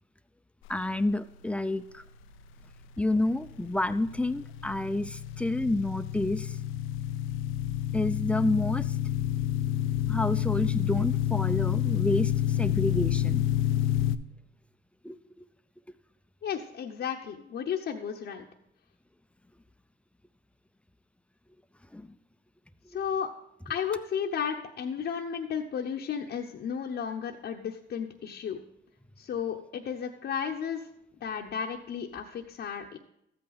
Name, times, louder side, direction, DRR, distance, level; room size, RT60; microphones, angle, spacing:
voice 1, 0.7-2.0 3.0-6.6 7.9-9.0 10.1-13.4 15.0-15.2 21.9-22.1, left 2 dB, 5° left, 12 dB, 0.5 m, -29 dB
sound 1, 3.3-14.2, left 12 dB, 90° left, 0.5 m, -29 dB
voice 2, 16.4-18.5 22.9-23.3 23.6-28.6 29.2-30.9 31.2-33.0, left 7 dB, 60° left, 1 dB, 0.8 m, -33 dB
13.5 x 8.5 x 4.0 m, 0.80 s
cardioid pair, 90°, 20 cm